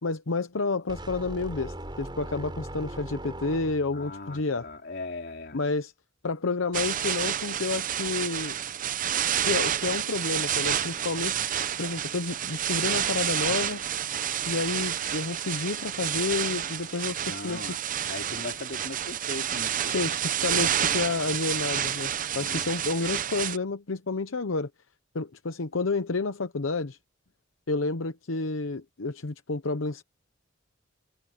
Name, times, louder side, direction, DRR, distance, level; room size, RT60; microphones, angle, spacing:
voice 1, 0.0-4.7 5.5-5.9 6.2-8.6 9.4-11.4 11.8-13.8 14.5-17.6 19.8-24.7 25.1-27.0 27.7-30.0, left 3 dB, 85° left, 0.9 m, -30 dB
sound 1, 0.9-4.1, right 1 dB, 25° right, 7.4 m, -39 dB
voice 2, 3.9-5.6 17.2-17.8 18.1-20.0 22.4-22.7, left 2 dB, 55° left, 3.8 m, -39 dB
sound 2, 6.7-23.6, right 9 dB, 40° right, 0.6 m, -29 dB
head